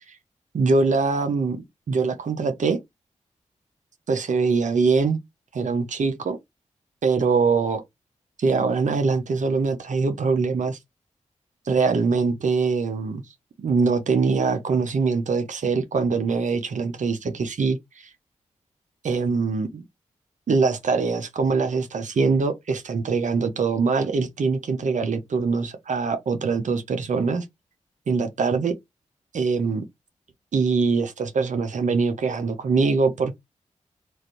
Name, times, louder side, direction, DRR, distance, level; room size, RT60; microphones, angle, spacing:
voice 1, 0.5-1.6 1.9-2.8 4.1-5.2 5.5-6.4 7.0-7.8 8.4-10.8 11.7-13.2 13.6-18.1 19.0-19.8 20.5-27.4 28.1-28.7 29.3-29.8 30.5-33.3, right 4 dB, 70° right, 0.7 m, -23 dB
3.2 x 2.5 x 2.9 m
cardioid pair, 45°, 13 cm